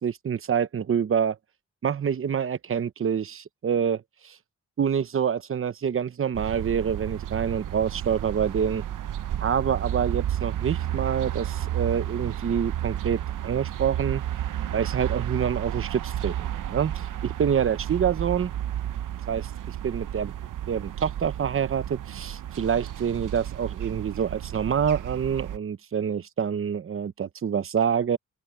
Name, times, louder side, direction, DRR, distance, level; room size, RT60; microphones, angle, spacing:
voice 1, 0.0-1.4 1.8-4.4 4.8-8.8 9.4-14.2 14.7-18.5 19.3-20.3 20.7-28.2, right 7 dB, 45° right, 0.8 m, -27 dB
sound 1, 6.3-25.6, right 11 dB, 90° right, 0.8 m, -32 dB
open air
wide cardioid pair, 130°, 31 cm